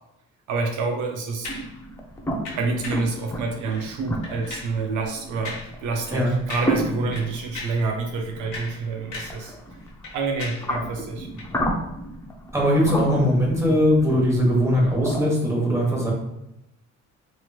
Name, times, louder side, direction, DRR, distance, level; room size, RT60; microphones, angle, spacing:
voice 1, 0.5-1.5 2.5-9.5 10.1-11.3, right 3 dB, 75° right, 2 dB, 0.5 m, -28 dB
sound 1, 1.4-1.7 2.4-3.1 3.7-3.9 4.2-4.8 5.4-5.7 6.0-6.2 6.5-6.9 7.1-7.9 8.3-9.5 9.7-10.7 11.3-11.5, left 2 dB, 80° left, 1.2 m, -37 dB
sound 2, 1.4-15.3, equal, 10° left, 0.4 m, -33 dB
voice 2, 12.5-16.1, equal, 10° right, -3 dB, 1.1 m, -20 dB
3.0 x 2.9 x 2.3 m, 0.85 s
cardioid pair, 90°, 30 cm